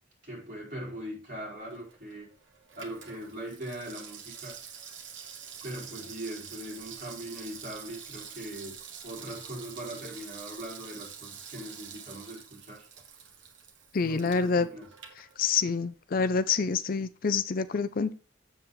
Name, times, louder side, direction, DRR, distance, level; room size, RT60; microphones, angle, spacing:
voice 1, 0.2-2.3 2.7-4.6 5.6-8.7 9.0-12.9 14.1-14.9, right 1 dB, 45° right, 4.3 m, -40 dB
Water tap faucet / Sink (filling or washing), 1.6-15.9 16.2-16.3, right 7 dB, 70° right, 1.5 m, -47 dB
voice 2, 13.9-14.7 15.4-18.1, left 5 dB, 50° left, 0.5 m, -27 dB
7.7 x 7.2 x 3.9 m
head